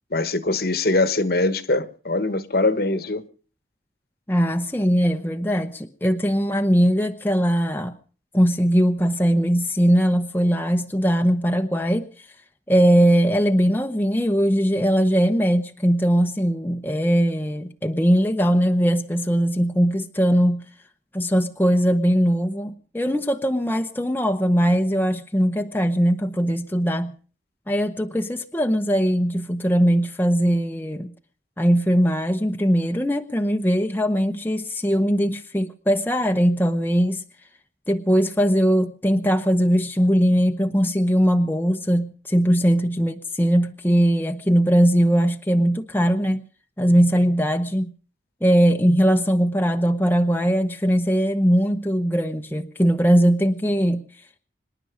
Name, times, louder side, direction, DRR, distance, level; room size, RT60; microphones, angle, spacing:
voice 1, 0.1-3.3, left 2 dB, 55° left, 1.3 m, -22 dB
voice 2, 4.3-8.0 8.3-12.1 12.7-20.6 21.1-27.1 27.7-31.1 31.6-37.2 37.9-46.4 46.8-47.9 48.4-54.1, equal, 10° left, 0.9 m, -20 dB
26.0 x 11.0 x 5.0 m
head